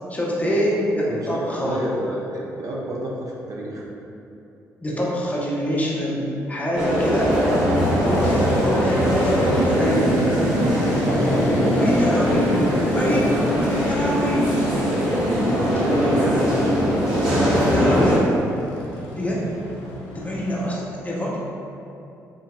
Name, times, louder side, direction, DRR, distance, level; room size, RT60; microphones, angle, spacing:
voice 1, 0.1-1.8 4.8-7.3 8.0-10.0 11.8-12.6 12.9-13.2 13.8-14.5 16.2-16.4 17.7-18.2 19.2-19.4 20.1-21.4, equal, 20° left, -5 dB, 0.8 m, -25 dB
voice 2, 1.1-3.9 9.7-10.5 11.0-11.8 15.3-16.7 17.2-18.0 18.3-18.4, right 1 dB, 50° right, -3 dB, 0.6 m, -29 dB
sound 1, 6.7-18.2, equal, 90° right, 0.8 m, -21 dB
Motorcycle, 7.7-20.7, left 1 dB, 85° left, 0.4 m, -30 dB
3.6 x 2.8 x 2.3 m, 2.8 s
hypercardioid pair, 50°, 7 cm